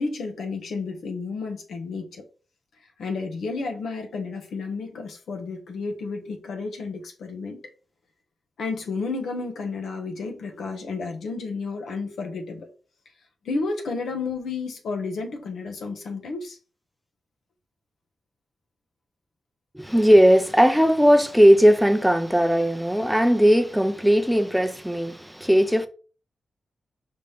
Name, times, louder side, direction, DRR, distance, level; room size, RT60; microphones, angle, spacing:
voice 1, 0.0-2.2 3.0-7.6 8.6-12.7 13.4-16.6, left 4 dB, 85° left, 0.9 m, -31 dB
voice 2, 19.7-25.9, equal, ahead, 0.5 m, -18 dB
5.3 x 2.8 x 3.4 m
wide cardioid pair, 115°, 0 cm